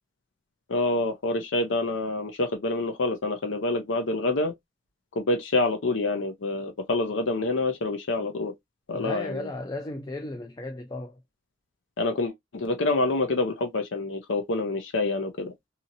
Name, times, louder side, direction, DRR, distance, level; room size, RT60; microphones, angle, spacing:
voice 1, 0.7-4.5 5.2-8.5 8.9-9.5 12.0-15.5, left 2 dB, 70° left, 0.6 m, -27 dB
voice 2, 8.9-11.2, left 2 dB, 20° left, 0.3 m, -35 dB
2.8 x 2.7 x 2.5 m
head